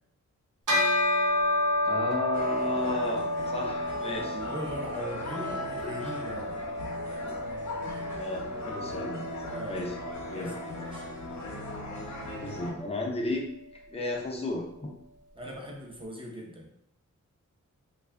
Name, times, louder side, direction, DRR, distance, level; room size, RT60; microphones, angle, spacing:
Bell, 0.7-10.4, left 1 dB, 85° right, 0.9 m, -31 dB
voice 1, 1.8-4.4 8.1-9.9 10.3-10.5 12.4-13.5 13.9-14.9, left 2 dB, 20° left, 0 dB, 0.6 m, -34 dB
sound 1, 2.3-12.7, left 2 dB, 70° left, 0.9 m, -38 dB
voice 2, 4.0-6.6 9.5-9.9 10.3-11.0 15.4-16.7, equal, 15° right, -2 dB, 0.7 m, -40 dB
3.3 x 2.4 x 3.3 m, 0.78 s
wide cardioid pair, 135°, 30 cm